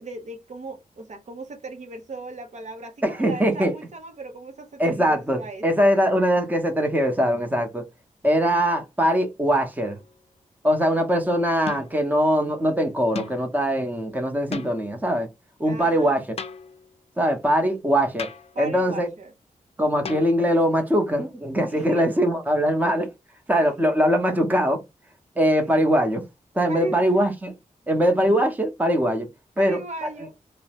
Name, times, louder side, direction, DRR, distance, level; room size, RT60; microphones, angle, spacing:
voice 1, 0.0-5.9 15.6-16.2 18.5-19.3 21.6-22.1 23.6-23.7 25.6-25.7 26.7-27.0 29.6-30.3, right 2 dB, 55° right, 0.6 m, -37 dB
voice 2, 3.0-3.7 4.8-7.8 8.2-10.0 10.6-15.3 15.6-16.2 17.2-18.3 18.6-19.1 19.8-23.1 23.5-24.8 25.4-26.2 26.5-27.5 27.9-29.3 29.6-29.8, equal, 10° right, 0.8 m, -22 dB
sound 1, 9.8-10.2 11.7-12.1 13.1-13.5 14.5-15.0 16.4-16.9 18.2-18.7 20.0-20.7, left 5 dB, 45° left, 0.5 m, -37 dB
2.7 x 2.0 x 2.8 m
cardioid pair, 80°, 14 cm